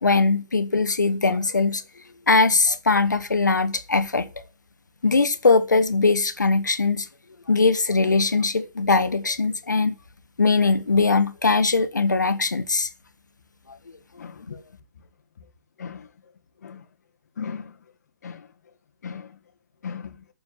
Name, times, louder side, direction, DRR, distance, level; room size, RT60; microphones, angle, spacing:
voice 1, 0.0-1.8 2.3-4.3 5.0-7.1 7.5-9.9 10.4-12.9, left 3 dB, 85° left, 1.5 m, -21 dB
voice 2, 14.2-14.6 15.8-16.1 16.6-16.8 17.4-17.7 18.2-18.5 19.0-19.3 19.8-20.2, left 6 dB, 65° left, 1.8 m, -36 dB
9.9 x 6.9 x 7.8 m
figure-of-eight pair, 130°, 10 cm